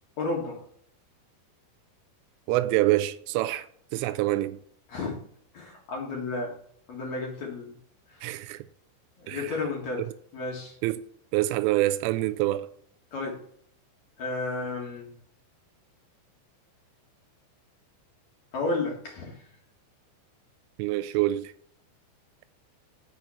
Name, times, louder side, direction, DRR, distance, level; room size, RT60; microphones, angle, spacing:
voice 1, 0.2-0.6 4.9-5.2 5.5-6.5 6.9-7.7 9.2-10.1 10.3-10.8 13.1-13.4 14.2-15.1 18.5-19.4, left 3 dB, 50° left, 2.2 m, -32 dB
voice 2, 2.5-3.7 3.9-4.6 8.2-8.6 9.3-9.5 10.8-11.0 11.3-12.7 20.8-21.5, right 16 dB, 85° right, 3.2 m, -26 dB
6.8 x 6.1 x 7.0 m
omnidirectional pair, 5.7 m